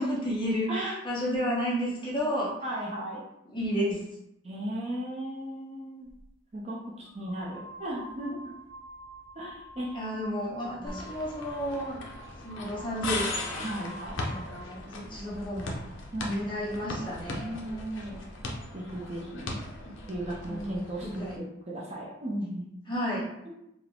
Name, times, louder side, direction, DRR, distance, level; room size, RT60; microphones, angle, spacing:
voice 1, 0.0-2.5 3.5-4.0 9.9-12.0 12.4-13.6 14.3-15.8 16.2-17.5 19.8-20.0 20.5-21.4 22.9-23.3, equal, 25° left, -6 dB, 1.2 m, -32 dB
voice 2, 2.6-3.2 4.4-6.1 6.5-8.5 9.3-10.0 10.7-11.0 13.6-14.2 16.1-16.3 17.4-18.2 18.7-19.6 20.1-22.7, right 1 dB, 30° right, -4 dB, 0.6 m, -36 dB
sound 1, 6.1-6.2 7.0-14.8, equal, 65° right, 1.0 m, -47 dB
sound 2, 10.9-21.4, left 2 dB, 60° left, 0.7 m, -38 dB
4.7 x 2.2 x 3.5 m, 0.83 s
head